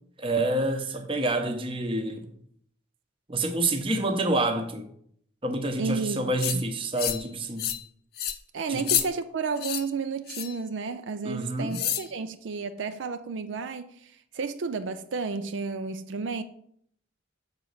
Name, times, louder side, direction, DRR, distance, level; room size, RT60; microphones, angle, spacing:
voice 1, 0.2-2.3 3.3-4.9 5.4-7.7 8.7-8.8 11.2-11.8, right 2 dB, 30° right, 0.8 m, -28 dB
voice 2, 5.8-6.7 8.5-16.4, right 4 dB, 80° right, 0.5 m, -32 dB
sound 1, 6.4-6.6 7.0-7.3 7.6-7.8 8.2-8.4 8.8-9.1 9.6-9.8 10.3-10.6 11.7-12.1, left 10 dB, 55° left, 0.6 m, -28 dB
7.0 x 4.0 x 6.5 m
head